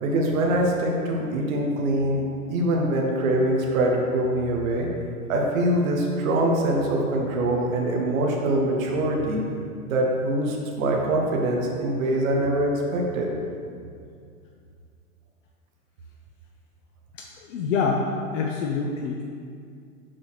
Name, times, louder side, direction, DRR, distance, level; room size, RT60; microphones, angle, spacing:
voice 1, 0.0-2.2 2.5-4.9 5.3-9.4 9.9-13.3, right 1 dB, 60° right, 0 dB, 1.2 m, -23 dB
voice 2, 17.4-19.2, left 4 dB, 55° left, 0 dB, 0.7 m, -26 dB
6.2 x 4.2 x 4.5 m, 2.3 s
hypercardioid pair, 110°, 45 cm